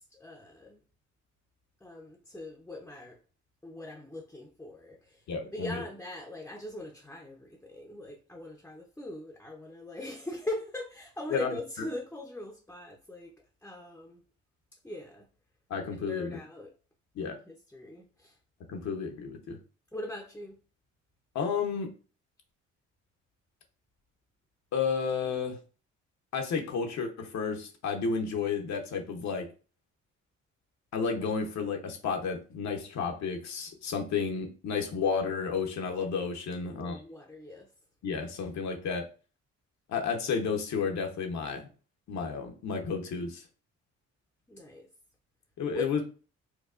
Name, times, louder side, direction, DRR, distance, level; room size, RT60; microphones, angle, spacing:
voice 1, 0.1-0.8 1.8-3.2 3.6-5.2 5.5-13.3 13.6-14.2 14.8-15.3 16.1-16.7 17.2-18.3 19.9-20.6 36.6-37.7 44.5-44.9 45.7-46.0, left 2 dB, 5° left, 0.6 m, -41 dB
voice 2, 5.3-5.8 11.3-11.8 15.7-16.4 17.1-17.4 18.7-19.6 21.3-21.9 24.7-25.6 26.3-29.5 30.9-37.0 38.0-39.1 39.9-41.7 42.1-43.4 45.6-46.0, left 5 dB, 65° left, 0.8 m, -32 dB
4.6 x 2.3 x 2.4 m
cardioid pair, 90°, 30 cm